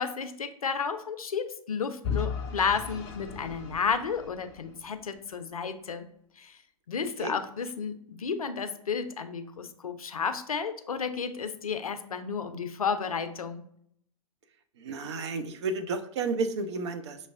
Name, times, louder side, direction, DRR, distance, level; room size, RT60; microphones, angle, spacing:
voice 1, 0.0-6.1 6.4-6.6 6.9-13.6, left 6 dB, 80° left, 9 dB, 0.4 m, -32 dB
Vehicle / Engine, 2.0-5.0, left 6 dB, 35° left, 0.6 m, -36 dB
voice 2, 14.8-17.2, right 3 dB, 50° right, 9 dB, 0.5 m, -32 dB
6.2 x 2.1 x 2.4 m, 0.69 s
figure-of-eight pair, 105°, 18 cm